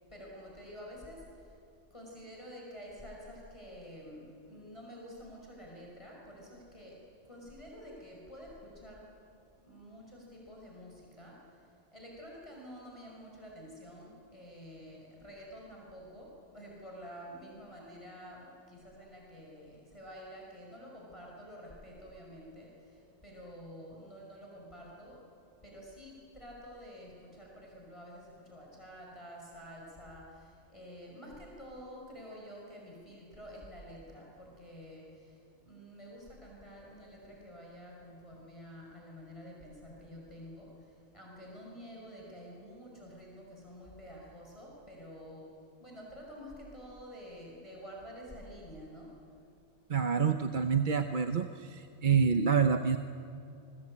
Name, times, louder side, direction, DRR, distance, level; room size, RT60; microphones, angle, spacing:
voice 1, 0.1-1.6 1.9-9.1 9.6-25.2 25.6-49.4, equal, 25° left, -3 dB, 5.4 m, -49 dB
voice 2, 49.9-53.0, right 6 dB, 45° right, 7 dB, 0.9 m, -27 dB
29.5 x 21.5 x 8.6 m, 2.7 s
omnidirectional pair, 1.2 m